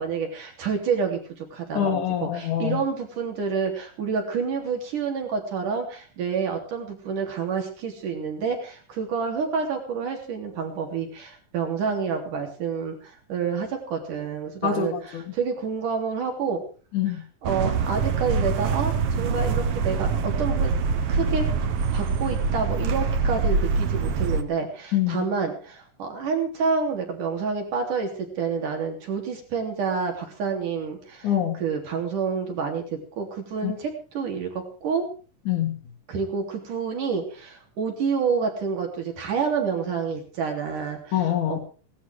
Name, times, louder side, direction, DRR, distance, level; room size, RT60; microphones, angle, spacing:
voice 1, 0.0-16.6 17.4-20.7 21.1-21.4 21.9-31.3 31.6-32.8 33.2-35.0 36.1-41.2 41.5-41.6, right 5 dB, 75° right, 3 dB, 4.9 m, -28 dB
voice 2, 1.7-2.8 14.6-15.2 16.9-17.2 24.9-25.3 31.2-31.6 33.6-33.7 35.5-35.8 41.1-41.6, left 10 dB, 70° left, -1 dB, 3.3 m, -25 dB
sound 1, 17.4-24.4, right 5 dB, 60° right, 1.9 m, -24 dB
18.5 x 13.0 x 4.8 m, 0.38 s
omnidirectional pair, 3.7 m